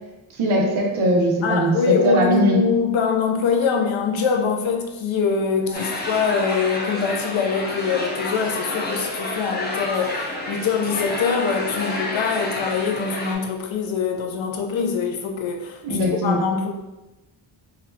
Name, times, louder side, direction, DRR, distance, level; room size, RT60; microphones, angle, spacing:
voice 1, 0.3-2.6 5.7-5.8 15.8-16.4, equal, 90° right, 0 dB, 0.8 m, -20 dB
voice 2, 1.4-16.7, left 5 dB, 75° left, 3 dB, 0.6 m, -23 dB
sound 1, 5.7-13.3, left 1 dB, 20° left, 0.5 m, -29 dB
4.0 x 2.1 x 2.6 m, 1.0 s
wide cardioid pair, 155°, 47 cm